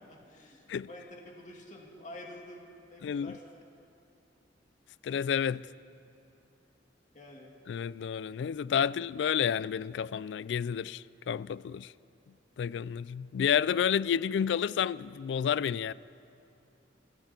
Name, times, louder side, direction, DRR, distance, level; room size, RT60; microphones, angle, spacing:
voice 1, 0.0-3.4 7.1-7.5, left 1 dB, 45° left, 2.4 m, -48 dB
voice 2, 3.0-3.4 5.0-5.7 7.7-11.9 12.6-15.9, left 8 dB, 75° left, 0.3 m, -30 dB
22.0 x 13.5 x 4.4 m
head